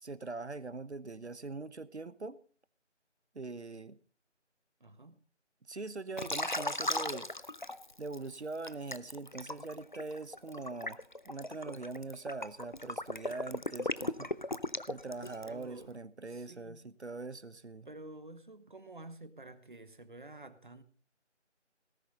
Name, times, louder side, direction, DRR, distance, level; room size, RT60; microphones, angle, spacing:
voice 1, 0.0-2.4 3.3-4.0 5.7-7.3 8.0-11.0 11.2-14.3 14.9-17.9, right 3 dB, 65° right, 1.0 m, -42 dB
voice 2, 4.8-5.2 15.4-15.9 16.3-16.9 17.8-20.8, right 2 dB, 40° right, 1.3 m, -50 dB
Liquid, 6.2-8.2 8.6-15.6, left 2 dB, 40° left, 0.6 m, -37 dB
18.5 x 10.5 x 4.1 m
figure-of-eight pair, 165°, 36 cm